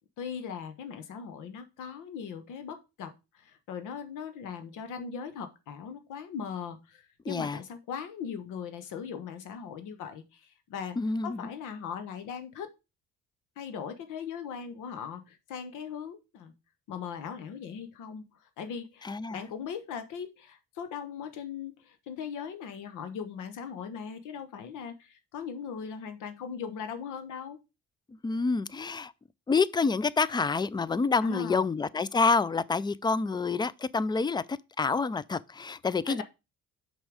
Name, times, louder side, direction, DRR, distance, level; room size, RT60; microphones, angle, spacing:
voice 1, 0.2-11.0 11.2-12.7 13.6-16.5 16.9-27.6 31.2-31.7 36.0-36.2, left 7 dB, 85° left, 1.2 m, -39 dB
voice 2, 7.3-7.6 11.0-11.5 19.0-19.4 28.2-29.1 29.5-36.2, left 4 dB, 15° left, 0.4 m, -28 dB
6.0 x 5.5 x 4.9 m
cardioid pair, 90°, 30 cm